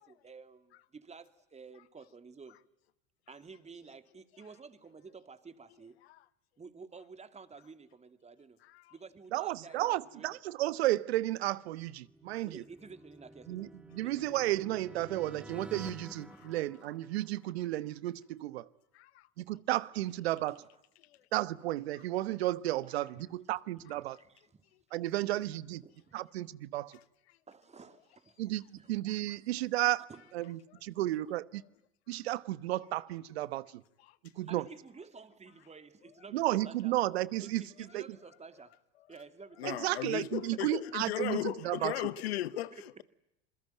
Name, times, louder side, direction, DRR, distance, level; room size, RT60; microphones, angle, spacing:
voice 1, 0.0-2.6 3.3-6.0 6.6-8.6 8.9-10.4 12.4-13.7 14.0-14.1 20.5-20.6 22.8-23.3 23.8-24.6 25.8-26.2 27.5-28.4 28.8-29.0 29.2-29.5 30.1-30.2 30.9-31.0 34.3-36.9 37.4-38.8 39.1-39.9 40.5-40.8 41.2-42.2 42.7-42.8, right 5 dB, 20° right, 2.7 m, -52 dB
voice 2, 8.6-8.9 16.4-16.5 18.9-19.3 21.0-21.2 34.0-34.2 39.6-43.0, left 14 dB, 85° left, 1.2 m, -37 dB
voice 3, 9.3-12.6 13.5-18.7 19.4-20.6 21.3-24.2 24.9-25.8 26.1-27.0 28.4-30.1 30.3-31.6 32.1-33.8 34.4-34.6 36.3-37.6 37.9-38.0 39.6-42.0, right 16 dB, 85° right, 1.2 m, -33 dB
sound 1, 11.9-17.6, right 1 dB, 5° right, 2.1 m, -50 dB
27.0 x 22.5 x 9.3 m
hypercardioid pair, 95°, 31 cm